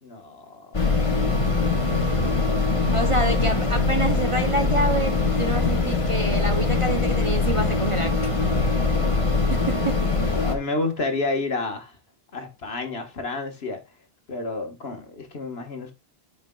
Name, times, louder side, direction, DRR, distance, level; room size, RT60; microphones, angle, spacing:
voice 1, 0.0-3.4 8.9-9.8 10.1-12.0 12.3-13.8 14.3-15.9, left 3 dB, 65° left, 1.6 m, -32 dB
sound 1, 0.7-10.6, left 3 dB, 30° left, 1.3 m, -22 dB
voice 2, 2.9-8.1 9.5-10.0, right 2 dB, 35° right, 0.7 m, -27 dB
11.5 x 5.1 x 2.3 m
omnidirectional pair, 1.1 m